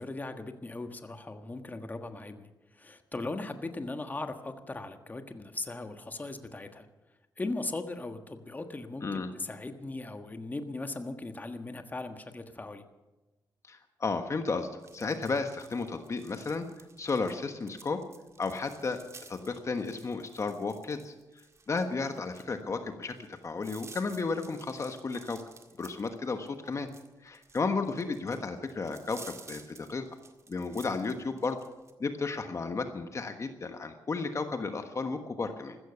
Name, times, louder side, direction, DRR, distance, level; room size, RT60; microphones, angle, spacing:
voice 1, 0.0-6.9 7.4-12.8, left 2 dB, 25° left, 7 dB, 1.4 m, -38 dB
voice 2, 13.7-16.7 17.0-18.0 18.4-19.0 19.3-21.1 21.7-23.2 23.4-25.4 25.8-26.9 27.2-30.0 30.5-31.6 32.0-35.8, left 4 dB, 40° left, 7 dB, 1.3 m, -33 dB
sound 1, 14.8-31.9, right 4 dB, 40° right, 1.9 m, -53 dB
15.0 x 14.0 x 6.9 m, 1.1 s
cardioid pair, 90°, 8 cm